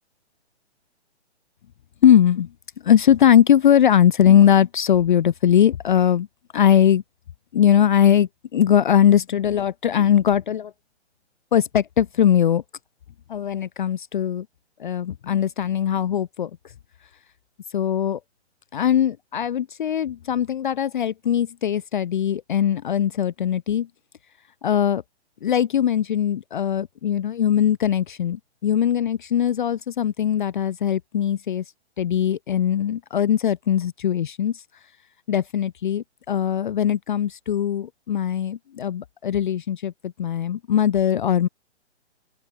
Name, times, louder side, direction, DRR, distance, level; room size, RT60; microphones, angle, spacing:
voice 1, 2.0-2.5 2.8-6.3 6.5-7.0 7.5-10.7 11.5-12.6 13.3-14.5 14.8-16.5 17.7-18.2 18.7-23.9 24.6-25.0 25.4-31.6 32.0-34.6 35.3-41.5, left 9 dB, 45° left, 0.5 m, -20 dB
open air
figure-of-eight pair, 130°, 34 cm